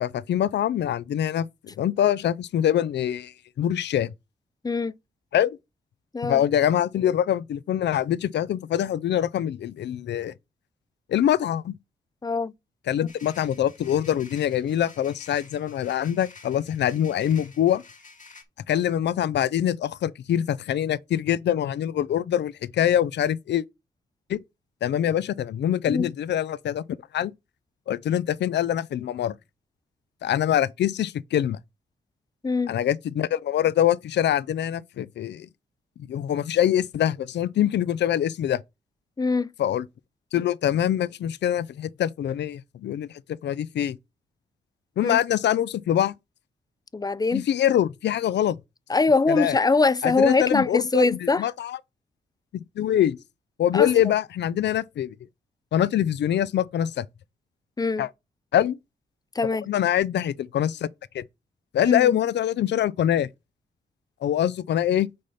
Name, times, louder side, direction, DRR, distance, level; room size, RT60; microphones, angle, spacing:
voice 1, 0.0-4.1 5.3-5.6 6.2-10.3 11.1-11.7 12.9-17.8 18.7-23.6 24.3-24.4 24.8-26.8 27.1-27.3 27.9-29.3 30.2-31.6 32.7-35.5 36.1-38.6 39.6-39.8 40.3-43.1 43.4-44.0 45.0-46.1 47.3-48.6 49.3-49.6 50.0-51.0 51.4-51.8 52.5-53.2 53.6-55.1 55.7-57.1 58.0-58.1 58.5-58.8 59.7-60.9 61.1-61.2 61.7-63.3 64.2-65.1, left 10 dB, 70° left, 0.5 m, -24 dB
voice 2, 12.2-12.5 25.9-26.1 32.4-32.7 39.2-39.5 45.0-45.2 46.9-47.4 48.9-51.5 53.7-53.9 57.8-58.0 59.4-59.6 61.9-62.2, left 3 dB, 20° left, 0.5 m, -22 dB
sound 1, 13.1-18.4, left 4 dB, 45° left, 1.9 m, -50 dB
6.4 x 4.2 x 5.5 m
cardioid pair, 60°, 19 cm